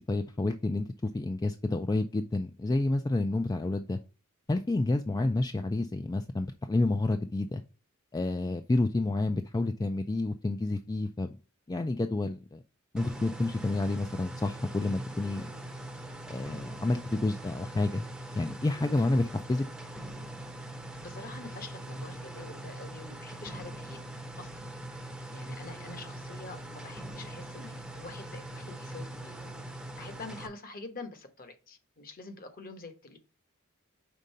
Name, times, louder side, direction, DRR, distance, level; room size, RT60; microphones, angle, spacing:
voice 1, 0.0-4.0 4.5-7.6 8.1-11.3 11.7-12.6 12.9-15.5 16.3-18.1 18.4-19.6, left 2 dB, 15° left, 7 dB, 0.3 m, -29 dB
sound 1, 13.0-30.5, right 1 dB, 5° right, 0.7 m, -42 dB
voice 2, 21.0-24.0 24.4-24.7 25.3-29.4 30.0-33.2, left 3 dB, 40° left, 8 dB, 1.1 m, -46 dB
5.3 x 3.6 x 5.4 m, 0.34 s
head